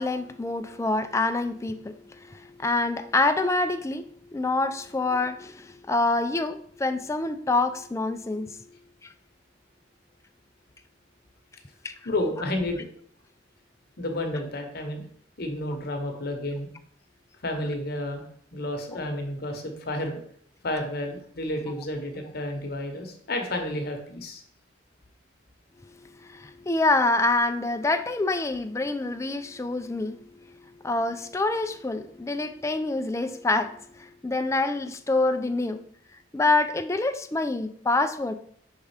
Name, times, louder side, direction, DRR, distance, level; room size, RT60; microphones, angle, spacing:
voice 1, 0.0-4.0 4.3-8.6 9.0-9.1 11.8-11.9 26.2-30.2 30.8-35.8 36.3-38.3, left 2 dB, 15° left, 9 dB, 0.3 m, -26 dB
voice 2, 12.0-12.8 14.0-15.1 15.4-16.7 17.4-18.2 18.5-20.2 20.6-24.4, left 1 dB, 50° left, 4 dB, 1.0 m, -31 dB
5.3 x 3.6 x 4.9 m, 0.63 s
head